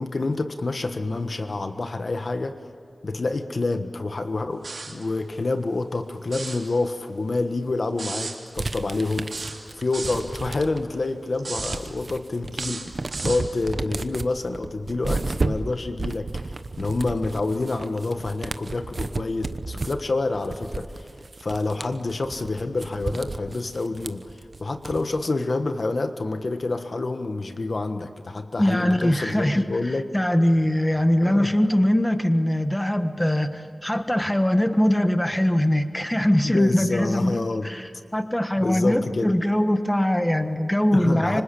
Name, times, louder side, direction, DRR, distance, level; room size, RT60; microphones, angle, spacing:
voice 1, 0.0-2.6 3.0-9.3 9.7-12.9 13.2-21.1 21.4-30.0 31.2-31.5 36.4-37.7 38.6-39.3 40.9-41.4, left 3 dB, 65° left, 7 dB, 1.4 m, -28 dB
sound 1, 4.6-5.0 6.2-6.6 8.0-8.4 9.3-10.2 11.4-11.8 12.5-13.5, right 3 dB, 80° right, 3.6 m, -34 dB
sound 2, 8.6-11.0 11.3-25.3, right 3 dB, 60° right, 1.0 m, -33 dB
voice 2, 28.6-29.7 30.1-41.4, left 1 dB, 10° left, 8 dB, 1.5 m, -22 dB
26.0 x 25.5 x 8.5 m, 2.3 s
wide cardioid pair, 55°, 0 cm